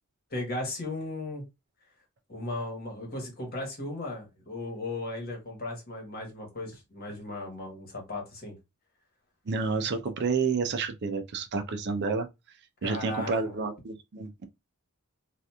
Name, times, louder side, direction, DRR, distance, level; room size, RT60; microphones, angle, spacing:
voice 1, 0.3-1.4 2.3-8.5 12.8-13.6, left 2 dB, 45° left, 1.2 m, -36 dB
voice 2, 9.5-12.3 12.8-14.5, right 4 dB, 50° right, 0.4 m, -30 dB
2.8 x 2.4 x 2.3 m
head